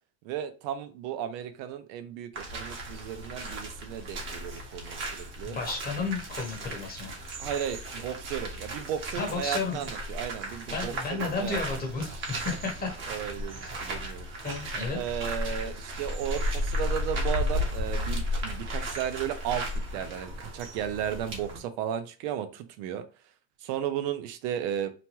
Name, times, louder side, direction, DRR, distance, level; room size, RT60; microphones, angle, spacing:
voice 1, 0.2-5.6 7.4-11.6 12.5-12.6 13.1-14.3 14.9-19.6 19.9-23.0 23.6-24.9, right 9 dB, 75° right, 9 dB, 0.6 m, -34 dB
sound 1, 2.3-21.6, equal, 40° right, 1.1 m, -34 dB
voice 2, 5.4-7.2 9.1-9.9 10.7-13.0 14.4-15.0, left 4 dB, 30° left, 1 dB, 1.1 m, -33 dB
2.9 x 2.2 x 3.0 m, 0.34 s
supercardioid pair, 120°, 31 cm